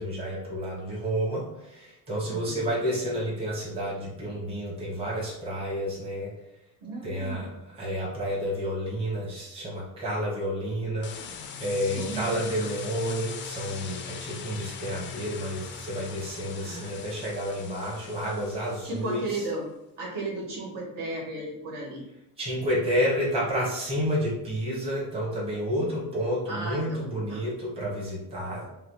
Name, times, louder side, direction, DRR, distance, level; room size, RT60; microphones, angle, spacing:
voice 1, 0.0-6.3 7.0-11.1 11.6-19.4 22.4-28.7, equal, 15° right, -6 dB, 1.4 m, -30 dB
voice 2, 2.3-2.6 6.8-7.5 11.9-12.4 16.6-17.3 18.8-19.7 20.0-22.0 25.8-26.1 26.5-27.0 27.3-27.4, right 2 dB, 55° right, -3 dB, 1.6 m, -35 dB
sound 1, 11.0-19.2, left 6 dB, 30° left, 0.4 m, -40 dB
4.8 x 2.0 x 4.7 m, 0.85 s
cardioid pair, 155°, 38 cm